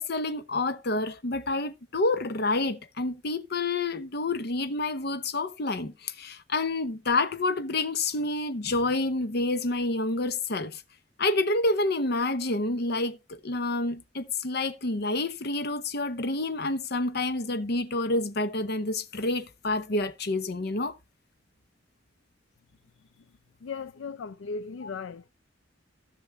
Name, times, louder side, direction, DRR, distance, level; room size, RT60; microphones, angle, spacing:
voice 1, 0.0-10.8 11.2-20.9, left 2 dB, 55° left, 0.8 m, -28 dB
voice 2, 23.6-25.3, left 4 dB, 80° left, 0.4 m, -37 dB
15.0 x 6.1 x 3.4 m
head